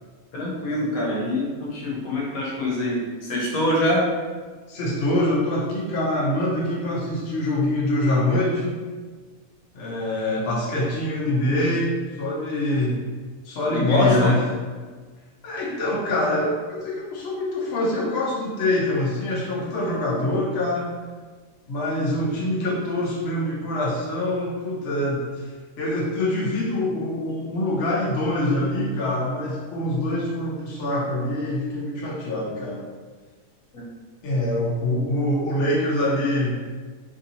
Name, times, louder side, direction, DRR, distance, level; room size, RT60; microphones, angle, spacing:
voice 1, 0.3-4.0 13.7-14.3 33.7-33.8, left 1 dB, 75° left, -4 dB, 1.3 m, -24 dB
voice 2, 4.7-8.8 9.7-13.0 13.4-14.4 15.4-20.9 21.7-25.5 25.8-32.8 34.2-36.5, left 1 dB, 55° left, -5 dB, 0.9 m, -24 dB
3.5 x 2.7 x 2.7 m, 1.4 s
omnidirectional pair, 1.5 m